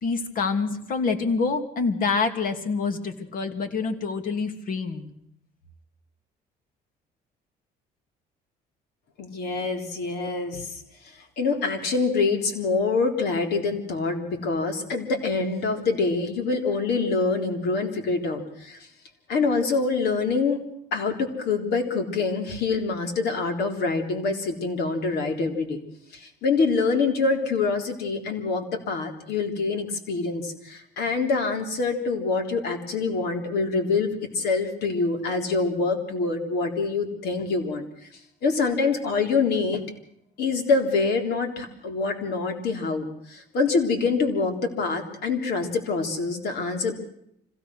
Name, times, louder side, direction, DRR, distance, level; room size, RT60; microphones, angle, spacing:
voice 1, 0.0-5.1, left 4 dB, 55° left, 7 dB, 2.7 m, -26 dB
voice 2, 9.2-10.8 11.4-18.9 19.3-20.6 20.9-25.8 26.1-37.8 38.4-39.8 40.4-47.0, left 4 dB, 75° left, 4 dB, 3.8 m, -25 dB
25.5 x 16.5 x 6.3 m, 0.73 s
cardioid pair, 110°, 17 cm